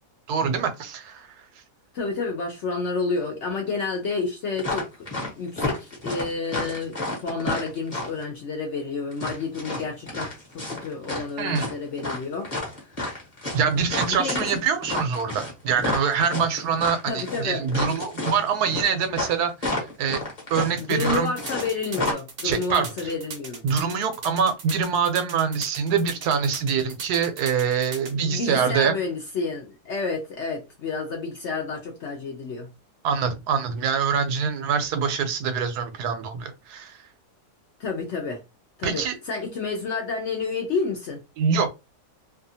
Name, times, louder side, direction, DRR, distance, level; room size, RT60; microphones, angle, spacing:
voice 1, 0.3-1.3 11.4-11.7 13.5-20.2 20.5-21.3 22.4-22.9 23.6-28.9 33.0-37.0 38.8-39.2 41.4-41.7, right 6 dB, 80° right, 1.1 m, -24 dB
voice 2, 1.9-12.5 12.8-13.2 14.1-14.4 17.1-17.7 20.8-23.6 28.1-32.7 37.8-38.4 38.8-41.2, left 4 dB, 65° left, 0.7 m, -30 dB
sound 1, 4.6-5.3 5.6-8.2 9.1-11.3 11.5-21.7 21.9-22.1, left 2 dB, 30° left, 0.9 m, -30 dB
sound 2, 20.8-28.1, right 4 dB, 50° right, 0.7 m, -38 dB
2.7 x 2.4 x 2.6 m
omnidirectional pair, 1.7 m